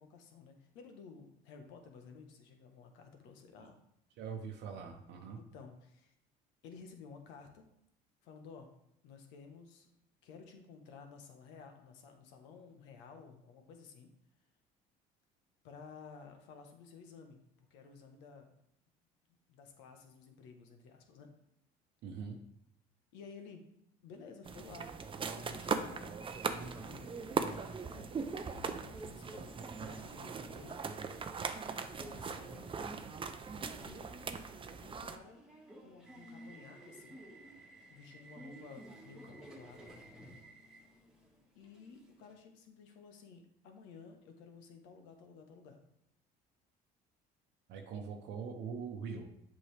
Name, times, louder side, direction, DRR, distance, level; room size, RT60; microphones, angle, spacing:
voice 1, 0.0-3.8 5.3-6.1 6.6-7.7 8.2-8.7 9.0-9.9 10.2-14.1 15.6-18.5 19.5-21.3 23.1-23.6 24.0-24.9 25.3-27.7 28.6-30.8 32.1-32.7 33.8-34.2 34.8-35.4 35.8-37.2 37.9-39.9 41.5-45.8, left 5 dB, 80° left, 5 dB, 1.2 m, -54 dB
voice 2, 4.2-5.4 22.0-22.4 47.7-49.3, right 6 dB, 65° right, 2 dB, 0.8 m, -42 dB
sound 1, 24.5-35.2, right 5 dB, 30° right, 0.6 m, -40 dB
Subway metro underground, 26.4-42.3, right 1 dB, 5° right, 1.8 m, -55 dB
7.7 x 5.4 x 3.3 m, 0.78 s
supercardioid pair, 85°, 19 cm